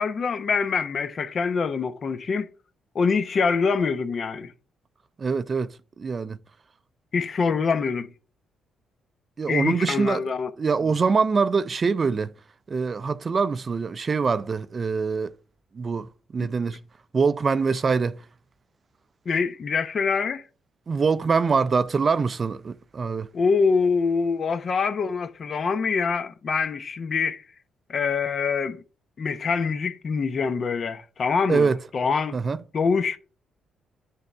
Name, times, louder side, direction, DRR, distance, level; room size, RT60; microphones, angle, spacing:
voice 1, 0.0-2.5 2.9-4.5 7.1-8.1 9.5-10.5 19.3-20.4 23.3-27.4 27.9-28.8 29.2-32.4 32.7-33.2, left 5 dB, 45° left, 0.7 m, -25 dB
voice 2, 5.2-6.4 9.4-10.2 10.6-12.3 12.7-15.3 15.7-16.8 17.1-18.2 20.9-23.3 31.5-31.8 32.3-32.6, right 5 dB, 40° right, 0.4 m, -24 dB
9.7 x 3.5 x 4.4 m
cardioid pair, 90°, 0 cm